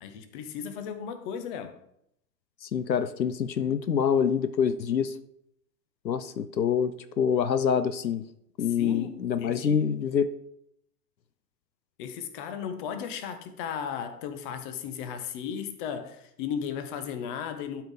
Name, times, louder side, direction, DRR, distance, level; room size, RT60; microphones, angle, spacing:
voice 1, 0.0-1.8 8.8-9.9 12.0-17.8, left 7 dB, 30° left, 0.8 m, -35 dB
voice 2, 2.6-5.2 6.0-8.2 8.6-10.3, left 7 dB, 85° left, 0.6 m, -26 dB
12.0 x 4.6 x 3.6 m
figure-of-eight pair, 105°, 50 cm